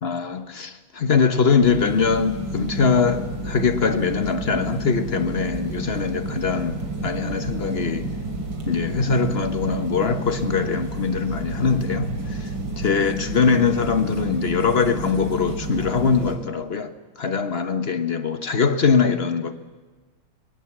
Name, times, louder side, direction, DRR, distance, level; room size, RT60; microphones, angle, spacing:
voice 1, 0.0-8.1 8.7-12.5 12.8-19.6, left 5 dB, 40° left, 1.1 m, -22 dB
sound 1, 1.6-16.4, right 2 dB, 85° right, 3.6 m, -30 dB
23.0 x 19.5 x 7.4 m
omnidirectional pair, 2.1 m